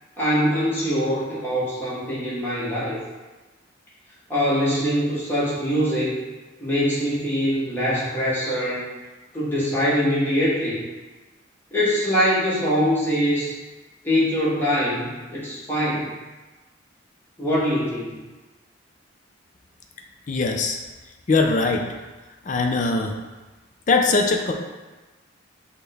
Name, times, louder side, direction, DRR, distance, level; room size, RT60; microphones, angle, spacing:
voice 1, 0.2-3.0 4.3-6.2 6.6-8.8 9.3-10.8 11.7-13.5 14.0-16.1 17.4-18.1, equal, 10° left, -8 dB, 1.0 m, -23 dB
voice 2, 20.3-20.8 21.3-21.9 22.4-23.1 23.9-24.5, left 3 dB, 40° left, 2 dB, 0.4 m, -21 dB
6.1 x 2.2 x 3.4 m, 1.2 s
head